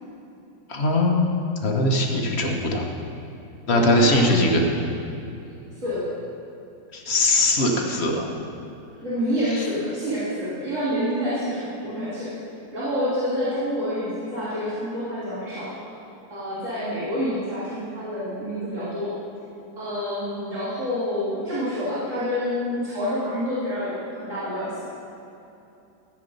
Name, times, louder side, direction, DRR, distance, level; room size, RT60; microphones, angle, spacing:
voice 1, 0.7-2.8 3.7-4.6 6.9-8.3 9.5-9.7, left 1 dB, 40° left, 1 dB, 1.2 m, -21 dB
voice 2, 3.7-4.4 5.7-6.1 8.9-12.3 12.7-15.9 16.3-19.1 19.7-24.8, equal, 40° right, -12 dB, 3.1 m, -28 dB
14.0 x 7.5 x 5.3 m, 2.8 s
omnidirectional pair, 2.0 m